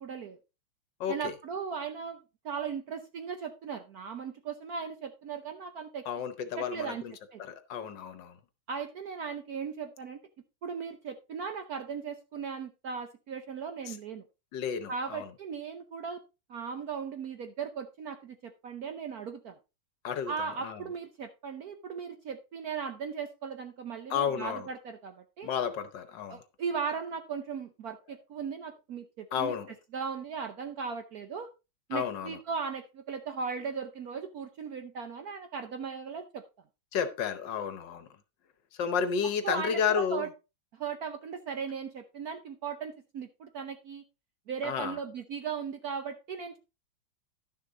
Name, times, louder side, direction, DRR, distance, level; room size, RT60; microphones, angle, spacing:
voice 1, 0.0-0.4 1.1-2.2 2.4-6.0 6.6-7.0 7.3-7.4 8.7-10.2 10.6-14.2 14.9-16.2 16.5-19.6 20.3-25.5 26.3-29.5 29.9-31.5 31.9-36.4 39.4-40.3 40.7-44.0 44.5-46.6, right 6 dB, 60° right, 1.0 m, -37 dB
voice 2, 1.0-1.3 6.1-7.1 7.4-8.4 13.9-14.0 14.5-15.2 20.0-20.8 24.1-24.7 25.4-26.4 29.3-29.7 31.9-32.4 36.9-38.1 38.8-40.2 44.6-45.0, left 7 dB, 65° left, 1.4 m, -32 dB
11.5 x 6.6 x 3.8 m
omnidirectional pair, 2.3 m